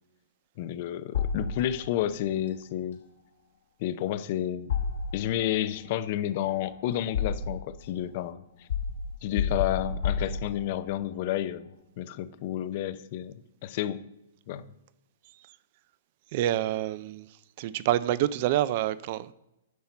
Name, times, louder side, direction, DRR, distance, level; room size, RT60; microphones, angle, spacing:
voice 1, 0.6-3.0 3.8-4.7 5.1-8.7 9.2-11.7 12.0-14.0 14.5-14.6, left 12 dB, 45° left, 0.6 m, -31 dB
sound 1, 1.1-2.0 4.7-5.6 6.5-7.8 8.7-10.9, left 6 dB, 70° left, 1.5 m, -31 dB
voice 2, 16.3-17.3 17.6-19.3, right 13 dB, 45° right, 0.4 m, -27 dB
9.5 x 5.7 x 4.4 m
hypercardioid pair, 150°, 0 cm